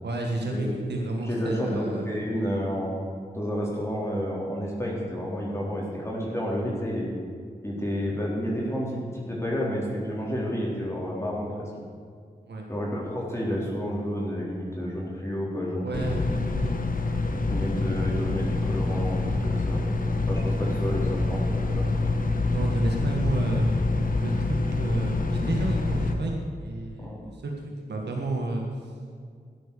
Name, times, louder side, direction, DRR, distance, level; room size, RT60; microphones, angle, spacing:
voice 1, 0.0-2.1 12.5-12.7 15.8-16.8 22.5-23.7 24.2-27.5 27.8-28.7, right 2 dB, 75° right, 1 dB, 1.7 m, -31 dB
voice 2, 1.2-3.0 3.3-7.1 7.6-11.7 12.7-16.2 17.5-19.9 20.2-21.9 27.0-27.2, equal, 15° left, -5 dB, 3.9 m, -30 dB
sound 1, 15.9-26.1, left 2 dB, 50° left, 1.5 m, -26 dB
13.0 x 10.5 x 6.9 m, 2.2 s
cardioid pair, 45°, 18 cm